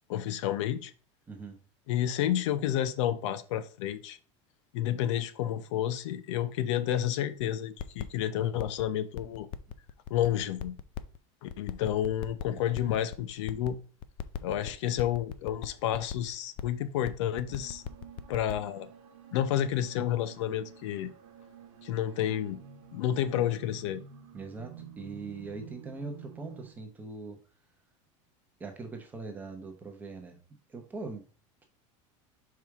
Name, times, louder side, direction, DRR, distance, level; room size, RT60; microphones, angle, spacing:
voice 1, 0.1-0.9 1.9-4.2 4.7-9.5 10.1-10.7 11.4-13.8 14.4-17.8 18.3-18.9 19.3-21.1 21.8-22.6 22.9-24.0, left 11 dB, 70° left, 0.7 m, -30 dB
voice 2, 1.3-1.6 12.5-12.6 24.3-27.4 28.6-30.4 30.7-31.3, right 3 dB, 10° right, 0.8 m, -41 dB
sound 1, 7.4-7.5 7.8-8.8 9.1-11.2 11.5-13.7 14.0-16.3 16.6-16.7 16.9-18.5, left 9 dB, 35° left, 0.4 m, -37 dB
sound 2, 17.5-26.7, right 7 dB, 65° right, 1.1 m, -50 dB
5.7 x 4.7 x 3.5 m
supercardioid pair, 180°, 16 cm